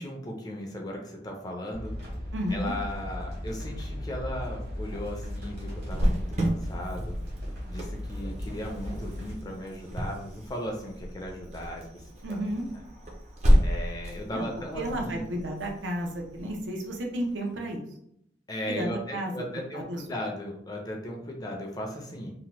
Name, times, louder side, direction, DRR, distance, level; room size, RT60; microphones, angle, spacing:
voice 1, 0.0-1.9 2.5-7.1 7.7-12.0 12.3-12.5 13.6-15.2 18.5-22.3, left 1 dB, 20° left, 0 dB, 0.4 m, -37 dB
sound 1, 1.7-9.3, equal, 55° right, 1.0 m, -36 dB
voice 2, 2.3-2.7 12.2-12.6 14.3-14.5 14.8-17.8 18.7-20.0, right 1 dB, 85° right, 1 dB, 0.6 m, -32 dB
Cricket, 5.9-17.3, equal, 35° right, 0.5 m, -30 dB
2.8 x 2.1 x 3.0 m, 0.75 s
head